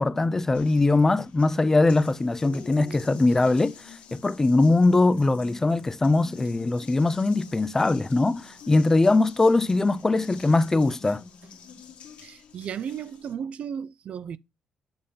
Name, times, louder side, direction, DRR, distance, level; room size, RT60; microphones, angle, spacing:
voice 1, 0.0-11.2, left 2 dB, 20° left, 0.4 m, -21 dB
Water tap faucet, 0.5-13.3, left 6 dB, 65° left, 1.6 m, -47 dB
voice 2, 12.2-14.4, right 8 dB, 55° right, 0.4 m, -34 dB
8.7 x 3.7 x 5.5 m
cardioid pair, 110°, 2 cm